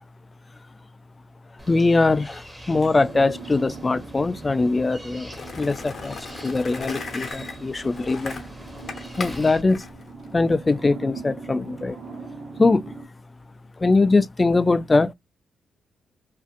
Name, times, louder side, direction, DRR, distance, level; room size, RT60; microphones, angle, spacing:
sound 1, 1.6-9.6, equal, 10° right, 0.7 m, -44 dB
voice 1, 1.7-5.3 5.6-8.4 9.2-9.8 10.3-12.0 12.6-12.9 13.8-15.1, left 3 dB, 30° left, 0.3 m, -21 dB
sound 2, 2.9-13.0, right 4 dB, 60° right, 1.0 m, -41 dB
Skateboard, 5.3-10.8, left 4 dB, 55° left, 0.7 m, -37 dB
2.6 x 2.4 x 2.4 m
supercardioid pair, 55°, 0 cm